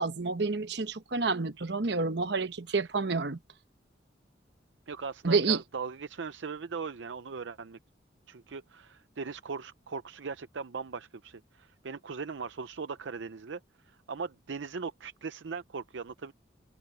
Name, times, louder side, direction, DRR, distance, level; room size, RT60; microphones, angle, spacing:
voice 1, 0.0-3.4 5.2-5.6, right 4 dB, 65° right, 1.0 m, -29 dB
voice 2, 4.9-7.8 8.3-16.3, right 5 dB, 80° right, 0.6 m, -39 dB
head